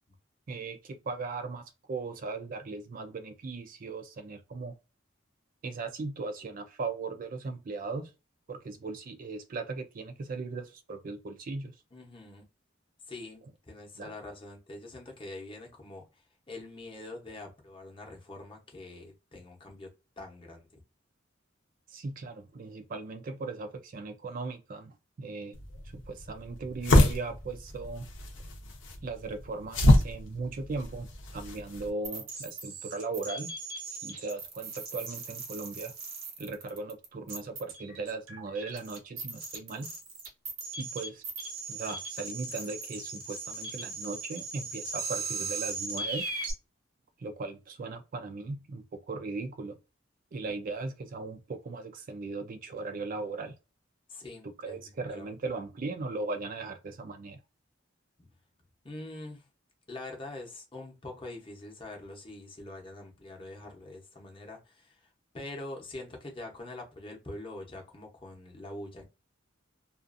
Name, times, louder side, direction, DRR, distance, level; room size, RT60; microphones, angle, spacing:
voice 1, 0.5-4.7 5.6-8.1 8.5-11.7 14.0-14.1 21.9-25.6 25.9-28.1 29.0-33.5 34.0-35.9 36.4-39.9 40.8-41.2 41.7-46.3 47.2-49.8 50.3-53.5 54.6-57.4, right 3 dB, 45° right, 0.4 m, -38 dB
voice 2, 11.9-12.4 13.1-16.0 16.5-19.9 20.2-20.8 54.1-54.8 55.1-55.3 58.2-58.3 58.8-59.4 59.9-65.1 65.3-69.1, left 2 dB, 25° left, 0.8 m, -44 dB
sound 1, 25.5-31.9, left 1 dB, 70° left, 0.7 m, -27 dB
sound 2, 32.0-46.5, right 3 dB, 80° right, 0.9 m, -38 dB
2.4 x 2.4 x 2.5 m
head